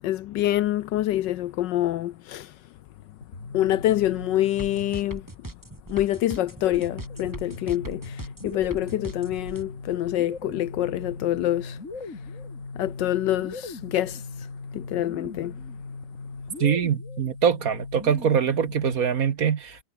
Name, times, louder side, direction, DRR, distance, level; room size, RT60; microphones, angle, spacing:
voice 1, 0.0-2.5 3.5-5.3 5.9-11.8 12.7-14.2 14.7-15.5, left 13 dB, 75° left, 1.2 m, -26 dB
sound 1, 3.2-5.3 6.3-19.2, left 3 dB, 40° left, 3.4 m, -39 dB
sound 2, 4.6-9.6, right 1 dB, 10° right, 2.0 m, -39 dB
voice 2, 16.6-19.8, right 7 dB, 50° right, 1.4 m, -23 dB
omnidirectional pair, 2.1 m